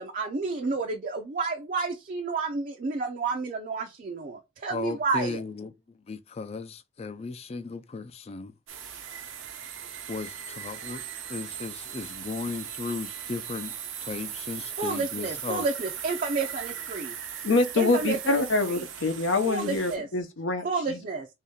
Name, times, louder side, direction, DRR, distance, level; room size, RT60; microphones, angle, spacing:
voice 1, 0.0-5.4 14.8-17.2 17.8-18.4 18.7-18.9 19.5-20.1 20.6-21.3, right 4 dB, 45° right, 0.5 m, -30 dB
voice 2, 4.7-5.7 6.1-8.5 10.1-11.0 11.3-13.7 14.0-15.7, left 4 dB, 35° left, 0.4 m, -36 dB
sound 1, 8.7-20.0, right 8 dB, 85° right, 0.7 m, -38 dB
voice 3, 17.4-21.0, left 3 dB, 75° left, 0.7 m, -25 dB
3.1 x 2.8 x 3.6 m
head